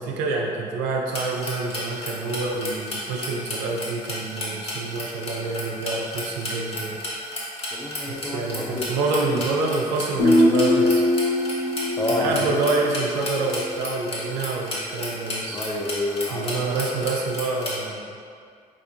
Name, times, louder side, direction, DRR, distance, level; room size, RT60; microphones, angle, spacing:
voice 1, 0.0-7.0 8.1-11.0 12.1-15.6 16.3-18.2, right 3 dB, 65° right, -1 dB, 0.4 m, -27 dB
sound 1, 1.1-17.8, left 1 dB, 30° left, 0.9 m, -33 dB
voice 2, 7.7-9.0 9.2-9.4 12.0-12.5 15.5-16.7, left 2 dB, 15° left, -2 dB, 0.6 m, -29 dB
Guitar, 10.2-13.8, left 1 dB, 60° left, 0.5 m, -22 dB
4.2 x 2.5 x 2.4 m, 2.2 s
figure-of-eight pair, 45°, 19 cm